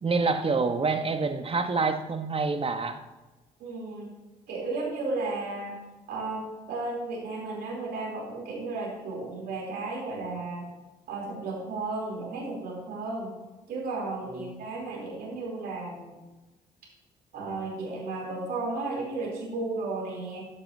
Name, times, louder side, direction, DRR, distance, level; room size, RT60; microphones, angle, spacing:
voice 1, 0.0-3.0 14.2-14.5, right 4 dB, 35° right, 8 dB, 1.1 m, -27 dB
voice 2, 3.6-4.1 4.5-5.8 6.1-10.7 11.1-13.3 13.7-16.2 17.3-20.5, right 3 dB, 65° right, -3 dB, 3.4 m, -34 dB
11.5 x 9.0 x 2.7 m, 1.1 s
hypercardioid pair, 50°, 17 cm